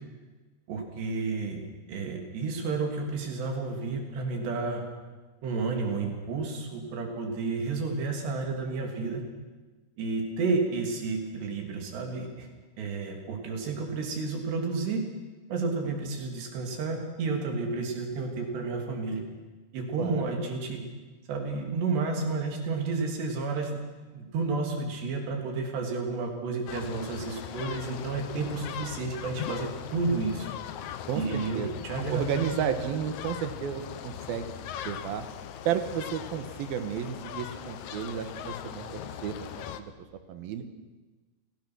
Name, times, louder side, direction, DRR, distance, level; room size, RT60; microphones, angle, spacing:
voice 1, 0.7-1.6 1.9-4.8 5.4-9.3 10.0-12.5 12.8-15.0 15.5-19.2 19.7-20.8 21.3-23.8 24.1-30.5 31.2-32.5, right 4 dB, 90° right, 2 dB, 5.2 m, -31 dB
voice 2, 20.0-20.4 31.1-31.2 31.5-31.7 32.1-34.5 34.8-35.2 35.7-39.3 39.7-39.9 40.3-40.6, right 8 dB, 70° right, 9 dB, 2.9 m, -32 dB
Seagulls and seashore at the magellan fjord, 26.7-39.8, left 10 dB, 80° left, 1.7 m, -40 dB
29.0 x 18.0 x 6.3 m, 1.3 s
omnidirectional pair, 4.7 m